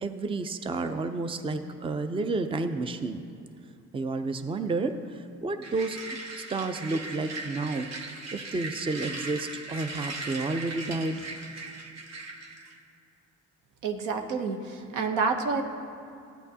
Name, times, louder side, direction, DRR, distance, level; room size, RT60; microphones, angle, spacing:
voice 1, 0.0-3.2 3.9-6.1 6.4-7.9 8.3-11.2, right 3 dB, 20° right, 8 dB, 0.5 m, -31 dB
sound 1, 5.6-12.8, right 3 dB, 60° right, 1.1 m, -39 dB
voice 2, 13.8-15.6, right 4 dB, 85° right, 4 dB, 0.9 m, -28 dB
13.5 x 9.0 x 2.8 m, 2.7 s
cardioid pair, 90°, 30 cm